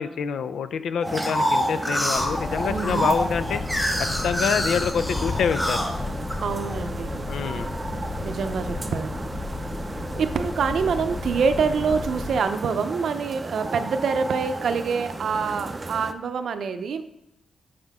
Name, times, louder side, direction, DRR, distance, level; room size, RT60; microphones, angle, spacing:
voice 1, 0.0-3.6 4.2-5.9 7.3-7.7, left 7 dB, 85° left, 12 dB, 0.4 m, -26 dB
sound 1, 1.0-6.8 7.3-8.0, equal, 5° left, 1.4 m, -27 dB
sound 2, 1.0-16.1, right 3 dB, 25° right, 0.5 m, -35 dB
sound 3, 2.2-12.4, left 3 dB, 35° left, 0.6 m, -33 dB
voice 2, 2.7-3.1 6.4-7.2 7.9-9.1 10.2-17.0, right 5 dB, 75° right, 9 dB, 0.6 m, -26 dB
9.5 x 5.0 x 3.5 m, 0.81 s
cardioid pair, 110°, 0 cm